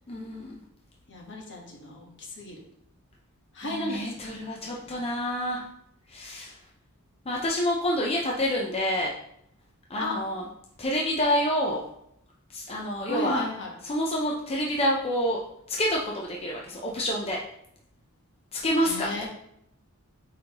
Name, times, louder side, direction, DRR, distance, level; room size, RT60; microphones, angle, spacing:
voice 1, 0.1-0.6 3.6-5.6 6.1-6.6 7.3-9.1 9.9-10.4 10.8-11.8 12.5-13.4 13.8-15.4 15.7-17.4 18.5-19.2, equal, 25° left, -2 dB, 0.7 m, -28 dB
voice 2, 1.1-2.6 3.5-4.4 4.7-5.1 10.0-10.2 13.1-13.7 18.8-19.3, left 1 dB, 55° left, 0 dB, 1.3 m, -34 dB
9.1 x 3.8 x 3.0 m, 0.76 s
head